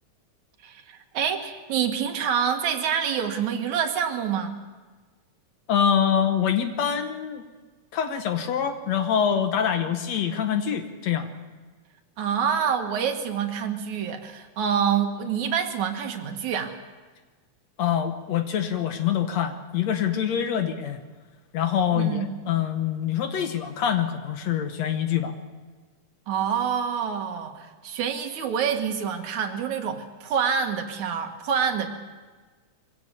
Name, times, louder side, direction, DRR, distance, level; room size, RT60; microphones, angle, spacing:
voice 1, 0.6-4.6 12.2-16.7 21.9-22.4 26.3-31.9, right 7 dB, 70° right, 5 dB, 2.8 m, -27 dB
voice 2, 5.7-7.4 7.9-11.3 17.8-21.0 21.5-25.4, left 8 dB, 70° left, 8 dB, 2.0 m, -25 dB
23.0 x 16.5 x 6.9 m, 1.4 s
omnidirectional pair, 3.6 m